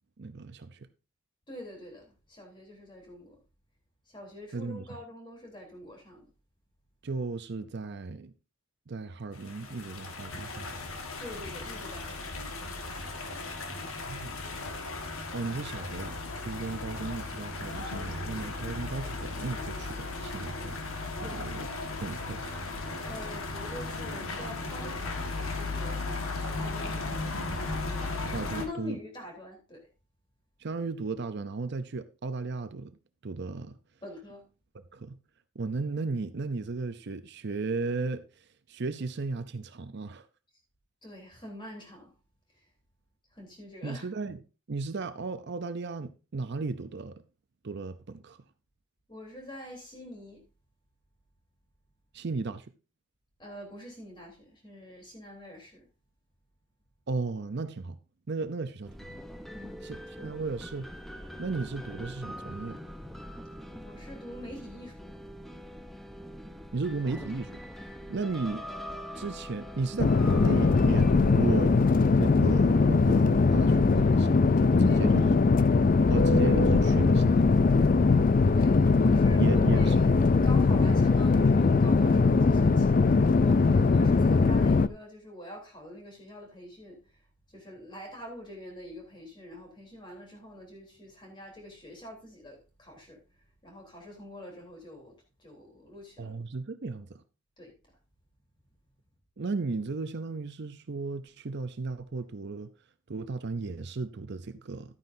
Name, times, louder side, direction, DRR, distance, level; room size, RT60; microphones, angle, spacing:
voice 1, 0.2-0.9 4.5-4.9 7.0-8.3 8.9-10.8 13.7-14.4 15.3-20.8 21.2-21.7 22.0-22.4 28.3-29.0 30.6-32.9 33.2-33.8 34.9-35.2 35.6-38.2 38.7-40.3 43.8-44.4 44.7-47.2 47.6-48.4 52.1-52.7 57.1-58.0 58.3-59.2 59.8-60.9 61.4-62.8 66.7-68.6 69.2-71.8 72.1-74.5 74.8-75.3 76.1-77.7 79.4-80.0 96.2-97.2 99.4-102.7 103.1-105.0, right 3 dB, 50° right, 0.6 m, -35 dB
voice 2, 1.5-3.4 4.1-6.3 11.2-12.4 21.2-21.5 23.0-27.0 28.5-29.8 34.0-34.4 41.0-42.1 42.5-42.6 43.3-44.1 49.1-50.4 53.4-55.9 59.5-60.1 63.8-65.1 68.1-68.3 74.8-75.2 78.5-80.1 80.4-87.2 87.5-93.2 93.6-95.1 95.4-96.3 97.6-97.7, left 1 dB, 20° left, 3.5 m, -45 dB
sound 1, 9.3-28.7, left 3 dB, 70° left, 1.6 m, -36 dB
sound 2, 58.8-75.4, equal, ahead, 0.8 m, -44 dB
sound 3, 70.0-84.9, left 4 dB, 40° left, 0.4 m, -21 dB
12.5 x 9.4 x 2.7 m
head